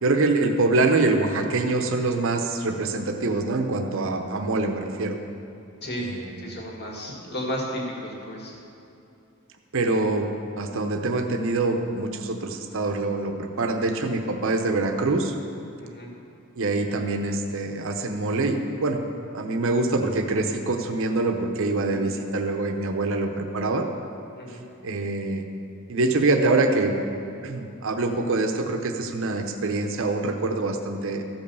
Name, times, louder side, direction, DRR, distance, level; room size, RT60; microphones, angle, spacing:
voice 1, 0.0-5.1 6.0-6.4 9.7-10.3 10.6-15.4 16.6-19.0 19.3-23.9 24.5-24.6 24.8-25.4 25.9-27.0 27.4-31.2, right 2 dB, 65° right, 5 dB, 0.8 m, -25 dB
voice 2, 6.4-8.5 15.8-16.1 24.4-24.6, equal, 50° left, -1 dB, 2.0 m, -33 dB
14.0 x 5.4 x 6.9 m, 2.7 s
head